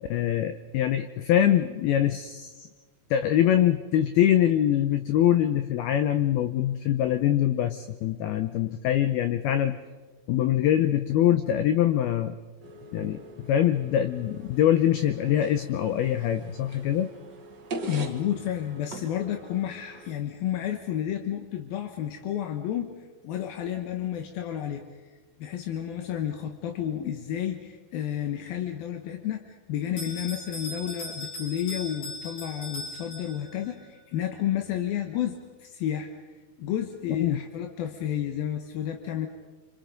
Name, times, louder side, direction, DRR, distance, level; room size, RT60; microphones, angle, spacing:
voice 1, 0.0-2.7 3.1-9.8 10.3-12.4 12.9-17.1 37.2-37.4, left 11 dB, 85° left, 10 dB, 2.2 m, -24 dB
sound 1, 12.6-20.1, right 2 dB, 70° right, 1.0 m, -42 dB
voice 2, 17.9-22.9 23.2-24.9 25.4-36.1 36.6-39.3, left 10 dB, 70° left, 5 dB, 2.4 m, -31 dB
Bell, 30.0-33.7, left 1 dB, 40° left, 7.0 m, -39 dB
28.5 x 26.0 x 5.2 m, 1.3 s
omnidirectional pair, 5.5 m